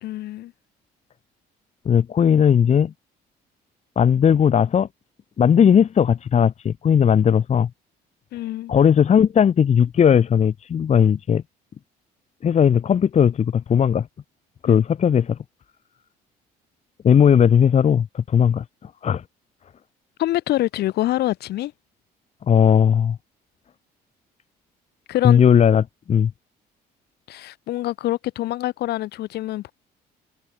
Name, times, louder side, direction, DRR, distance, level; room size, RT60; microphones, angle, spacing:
voice 1, 0.0-0.5 8.3-8.7 14.7-14.8 20.2-21.7 25.1-25.4 27.3-29.7, left 15 dB, 75° left, 3.5 m, -25 dB
voice 2, 1.9-2.9 4.0-4.9 5.4-7.7 8.7-11.4 12.4-14.1 14.6-15.4 17.0-19.2 22.5-23.2 25.2-26.3, left 8 dB, 40° left, 1.9 m, -17 dB
cardioid pair, 110°, 17 cm